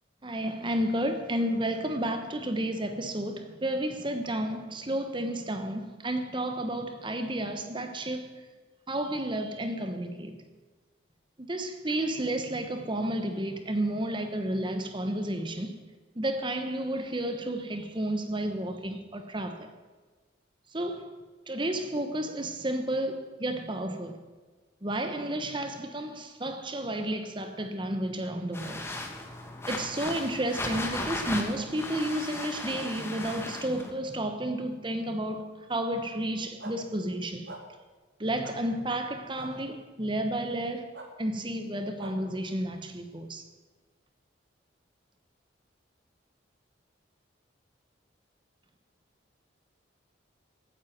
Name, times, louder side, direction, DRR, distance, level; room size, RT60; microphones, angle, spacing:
voice 1, 0.2-8.3 8.9-10.3 11.4-15.7 16.2-19.7 20.7-21.1 21.5-24.2 24.8-28.8 29.7-37.5 38.2-40.9 41.2-43.4, right 1 dB, 25° right, 1.0 m, -31 dB
sound 1, 28.5-33.9, left 2 dB, 15° left, 1.4 m, -36 dB
sound 2, 36.6-36.7 37.5-37.6 38.4-38.5 39.4-39.5 40.9-41.1 42.0-42.1, right 2 dB, 65° right, 2.2 m, -42 dB
15.5 x 9.1 x 6.0 m
head